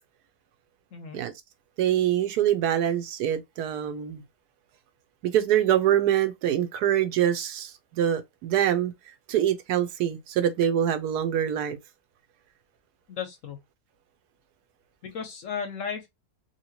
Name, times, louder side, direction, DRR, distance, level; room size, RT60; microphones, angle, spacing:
voice 1, 0.9-1.2 13.1-13.6 15.0-16.1, left 6 dB, 65° left, 0.8 m, -35 dB
voice 2, 1.8-4.2 5.2-8.9 9.3-11.8, right 10 dB, 75° right, 1.1 m, -24 dB
2.8 x 2.8 x 2.8 m
omnidirectional pair, 1.8 m